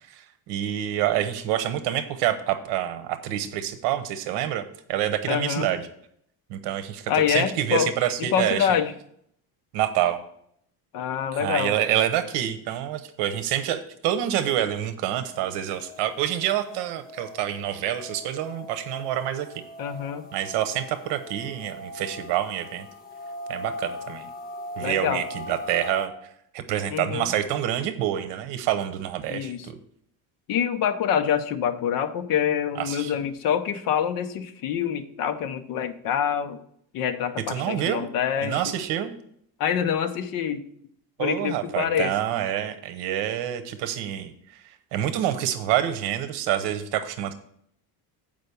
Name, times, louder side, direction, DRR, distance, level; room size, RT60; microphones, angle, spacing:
voice 1, 0.1-4.6 4.9-5.9 6.5-8.7 9.7-10.2 11.3-19.5 20.3-22.9 23.5-24.3 24.8-26.1 26.5-29.8 32.8-33.1 37.5-38.1 38.4-39.1 41.2-44.3 44.9-47.3, right 11 dB, 75° right, 10 dB, 0.9 m, -27 dB
voice 2, 5.3-5.7 7.1-7.9 8.3-8.9 10.9-11.7 19.8-20.2 24.8-25.2 26.9-27.3 29.3-29.7 30.5-36.6 36.9-38.6 39.6-40.6 41.2-42.1, left 8 dB, 55° left, 8 dB, 0.8 m, -26 dB
sound 1, 15.2-26.1, left 2 dB, 20° left, 0.8 m, -40 dB
7.8 x 5.2 x 6.9 m, 0.69 s
cardioid pair, 175°, 41 cm